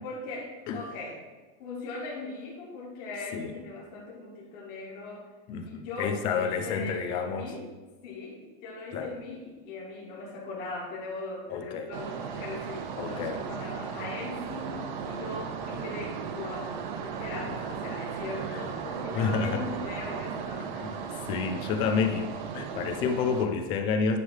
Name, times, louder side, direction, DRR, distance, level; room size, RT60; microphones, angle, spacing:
voice 1, 0.0-1.2 1.6-5.3 5.6-7.6 8.0-14.8 15.0-20.8, left 3 dB, 35° left, -4 dB, 1.8 m, -39 dB
voice 2, 5.5-7.5 8.9-9.1 11.5-11.9 13.0-13.4 17.4-17.6 18.5-18.6 19.1-19.6 20.8-24.2, left 5 dB, 20° left, 6 dB, 0.3 m, -30 dB
sound 1, 11.9-23.5, right 6 dB, 55° right, 0.8 m, -36 dB
9.4 x 3.2 x 6.4 m, 1.3 s
supercardioid pair, 170°, 29 cm